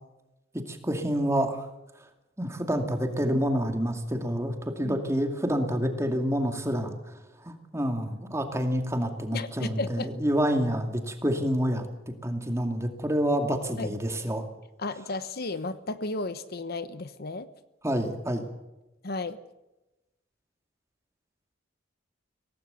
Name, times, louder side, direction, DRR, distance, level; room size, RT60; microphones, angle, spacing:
voice 1, 0.5-1.7 2.4-7.1 7.4-14.4 17.8-18.4, equal, 15° right, 5 dB, 2.4 m, -28 dB
voice 2, 9.3-10.1 13.8-13.9 14.8-17.5 19.0-19.4, left 3 dB, 55° left, 13 dB, 1.0 m, -33 dB
24.0 x 17.5 x 6.9 m, 1.0 s
head